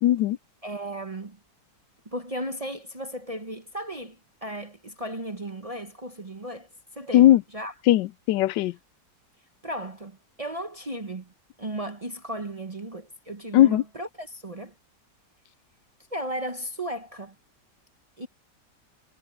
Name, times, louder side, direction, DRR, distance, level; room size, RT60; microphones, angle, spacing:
voice 1, 0.0-0.4 7.1-7.4 7.9-8.7 13.5-13.8, left 13 dB, 90° left, 1.3 m, -18 dB
voice 2, 0.6-1.4 2.1-7.7 9.6-11.3 11.6-14.7 16.1-17.3 18.2-18.3, right 1 dB, 30° right, 0.7 m, -35 dB
omnidirectional pair, 1.9 m